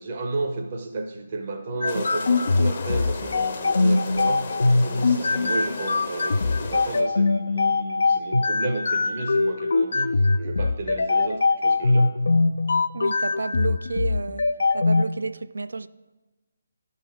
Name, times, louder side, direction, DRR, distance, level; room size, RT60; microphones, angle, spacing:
voice 1, 0.0-4.5 4.8-12.2, right 3 dB, 40° right, 0.7 m, -32 dB
sound 1, 1.8-15.0, left 3 dB, 65° left, 0.4 m, -22 dB
sound 2, 1.9-7.0, left 4 dB, 45° left, 0.8 m, -35 dB
voice 2, 12.9-14.5 14.7-15.9, right 3 dB, 70° right, 0.3 m, -30 dB
10.0 x 4.0 x 6.0 m
figure-of-eight pair, 145°, 0 cm